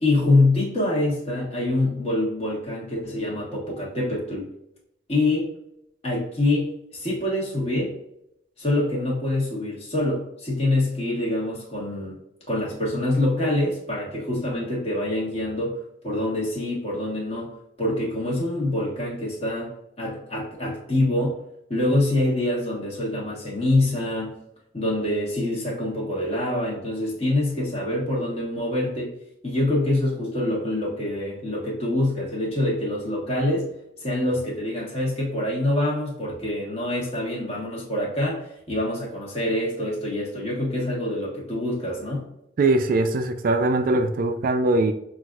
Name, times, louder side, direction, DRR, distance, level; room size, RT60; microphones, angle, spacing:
voice 1, 0.0-4.5 5.1-5.5 6.0-7.9 8.6-12.1 12.5-15.7 16.0-17.5 17.8-19.7 20.0-21.4 21.7-24.3 24.7-29.1 29.4-33.7 34.0-42.3, left 1 dB, 35° left, -4 dB, 1.3 m, -25 dB
voice 2, 42.6-44.9, right 2 dB, 50° right, 7 dB, 0.3 m, -21 dB
5.7 x 2.5 x 2.4 m, 0.81 s
head